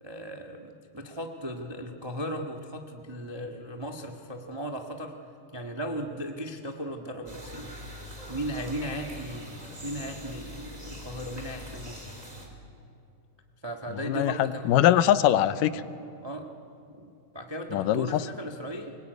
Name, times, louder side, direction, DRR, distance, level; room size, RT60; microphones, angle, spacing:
voice 1, 0.0-5.1 5.5-7.7 8.3-12.1 13.6-14.7 16.2-16.5 16.9-19.0, equal, 35° right, 3 dB, 0.4 m, -37 dB
sound 1, 7.3-12.5, equal, 10° right, 3.4 m, -43 dB
voice 2, 14.1-15.8 17.7-18.1, left 12 dB, 85° left, 13 dB, 2.4 m, -22 dB
24.5 x 21.0 x 9.5 m, 2.6 s
omnidirectional pair, 3.8 m